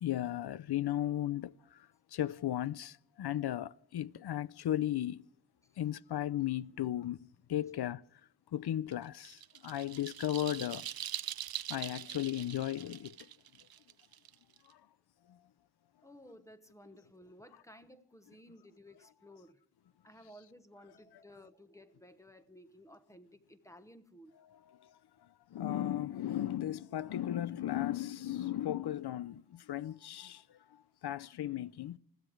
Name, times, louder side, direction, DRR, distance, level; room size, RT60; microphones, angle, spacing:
voice 1, 0.0-5.2 5.8-8.0 8.5-10.9 11.7-13.3 14.7-14.8 15.3-15.4 24.5-25.0 25.5-32.0, left 12 dB, 70° left, 0.5 m, -36 dB
sound 1, 8.9-14.7, right 11 dB, 60° right, 0.5 m, -43 dB
voice 2, 16.0-19.6 20.0-24.3, equal, 5° left, 1.0 m, -56 dB
20.5 x 14.5 x 4.6 m
wide cardioid pair, 130°, 41 cm